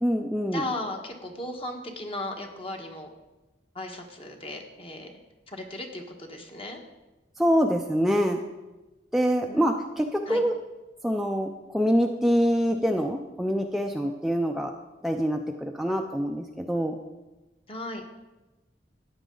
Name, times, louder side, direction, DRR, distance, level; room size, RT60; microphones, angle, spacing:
voice 1, 0.0-0.6 7.4-8.4 9.1-10.5 11.0-14.7 15.0-17.0, equal, ahead, 2 dB, 0.5 m, -25 dB
voice 2, 0.5-3.1 3.7-5.1 5.5-6.8 9.5-9.6 10.3-10.4 17.7-18.0, left 1 dB, 30° left, 3 dB, 1.4 m, -36 dB
14.0 x 9.6 x 3.9 m, 1.1 s
head